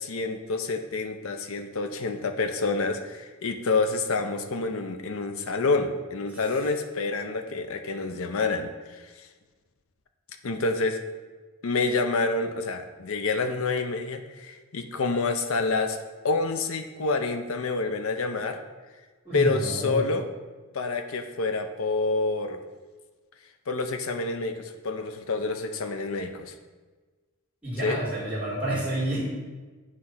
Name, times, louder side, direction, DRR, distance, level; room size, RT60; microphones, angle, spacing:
voice 1, 0.0-9.0 10.4-11.0 11.6-16.0 16.2-18.6 19.3-20.3 20.7-22.6 23.7-26.5 27.8-28.0, left 3 dB, 65° left, 7 dB, 0.6 m, -28 dB
voice 2, 19.2-20.0 27.6-29.2, right 1 dB, 5° right, -9 dB, 2.4 m, -29 dB
8.2 x 3.2 x 5.6 m, 1.3 s
head